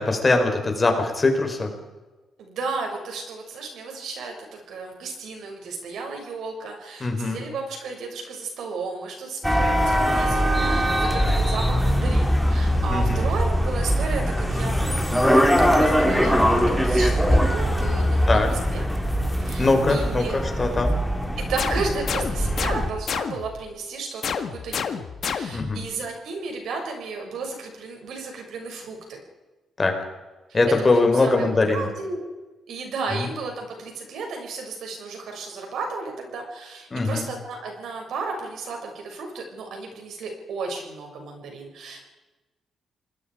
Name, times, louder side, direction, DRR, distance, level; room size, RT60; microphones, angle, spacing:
voice 1, 0.0-1.7 7.0-7.4 12.9-13.2 18.3-18.5 19.6-21.0 25.5-25.8 29.8-29.9 30.5-31.9 36.9-37.2, left 3 dB, 25° left, 4 dB, 4.6 m, -21 dB
voice 2, 2.4-15.1 15.7-18.8 19.4-20.4 21.4-29.2 30.5-32.3 32.7-42.1, right 4 dB, 80° right, 2 dB, 6.8 m, -33 dB
sound 1, 9.4-22.9, equal, ahead, 2.7 m, -22 dB
sound 2, 21.6-23.6 24.2-25.8, left 6 dB, 55° left, 1.7 m, -30 dB
28.0 x 20.5 x 5.1 m, 1.2 s
cardioid pair, 125°, 0 cm